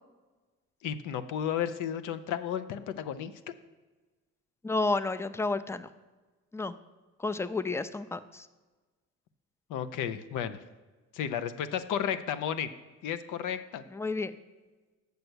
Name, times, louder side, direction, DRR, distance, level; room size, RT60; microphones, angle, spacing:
voice 1, 0.8-3.3 9.7-10.6 11.1-12.7 13.0-13.8, left 9 dB, 90° left, 12 dB, 0.6 m, -33 dB
voice 2, 4.6-5.9 6.5-6.7 7.2-8.5 13.9-14.3, left 3 dB, 10° left, 13 dB, 0.4 m, -31 dB
6.8 x 6.7 x 6.1 m, 1.3 s
cardioid pair, 90°, 30 cm